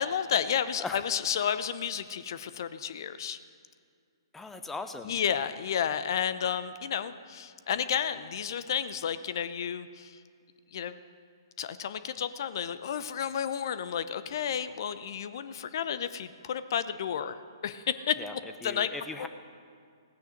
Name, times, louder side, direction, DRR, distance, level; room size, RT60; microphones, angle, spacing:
voice 1, 0.0-3.4 5.0-10.2 10.7-11.0 11.6-18.9 19.2-19.3, left 8 dB, 55° left, 13 dB, 0.7 m, -32 dB
voice 2, 4.3-5.1 18.2-18.3 18.6-19.3, left 3 dB, 10° left, 8 dB, 0.8 m, -38 dB
16.5 x 9.3 x 6.6 m, 2.2 s
figure-of-eight pair, 125°, 3 cm